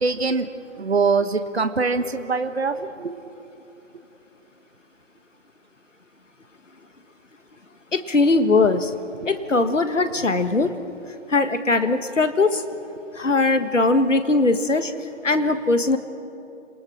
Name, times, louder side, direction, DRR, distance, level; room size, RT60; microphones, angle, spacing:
voice 1, 0.0-0.5 0.8-3.2 10.1-10.7, right 4 dB, 55° right, 9 dB, 1.4 m, -24 dB
voice 2, 7.9-8.9 9.2-10.7 11.3-12.6 13.1-16.0, left 3 dB, 75° left, 9 dB, 1.6 m, -20 dB
28.0 x 18.5 x 6.3 m, 2.9 s
figure-of-eight pair, 165°, 37 cm